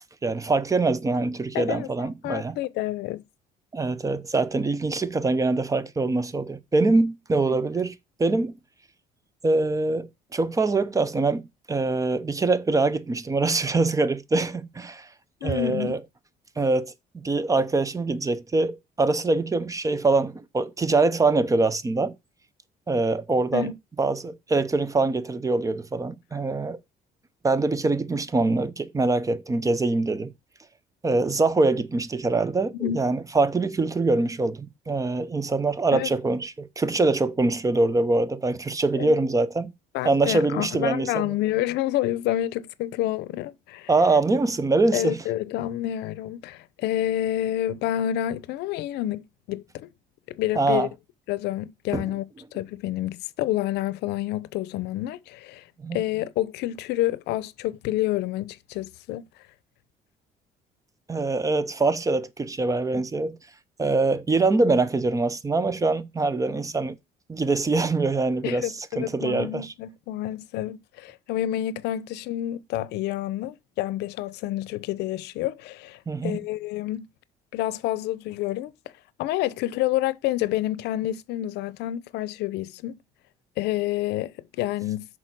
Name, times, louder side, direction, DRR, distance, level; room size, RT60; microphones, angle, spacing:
voice 1, 0.2-2.6 3.7-8.6 9.4-15.1 15.4-16.0 16.6-22.1 22.9-23.7 24.0-26.8 27.4-30.3 31.0-39.7 40.0-41.3 43.9-45.2 50.6-50.9 51.9-52.0 55.8-56.0 61.1-63.4 63.8-67.0 67.3-69.7 76.1-76.4, right 3 dB, 20° right, 0.6 m, -24 dB
voice 2, 1.5-3.2 7.5-7.6 15.4-16.0 23.5-23.7 32.7-33.0 35.9-36.1 38.9-39.2 39.9-43.9 44.9-49.9 50.3-50.9 51.3-52.2 52.5-55.7 55.9-59.2 68.4-77.1 77.5-78.7 79.2-83.0 83.6-85.1, left 13 dB, 85° left, 0.6 m, -28 dB
6.7 x 4.3 x 6.0 m
cardioid pair, 110°, 17 cm